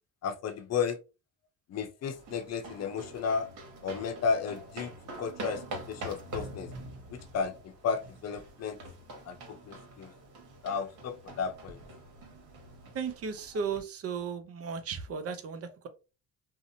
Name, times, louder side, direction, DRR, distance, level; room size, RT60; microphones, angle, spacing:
voice 1, 0.2-1.0 1.7-3.5 3.8-4.9 5.2-5.6 5.9-6.7 7.3-7.5 7.8-8.8 9.3-9.4 9.7-10.1 10.6-11.8, left 6 dB, 55° left, 7 dB, 0.6 m, -33 dB
sound 1, 2.0-13.8, right 1 dB, 80° right, 0.9 m, -45 dB
voice 2, 12.9-15.9, right 6 dB, 50° right, 8 dB, 0.6 m, -35 dB
2.7 x 2.0 x 2.6 m, 0.29 s
cardioid pair, 90°, 30 cm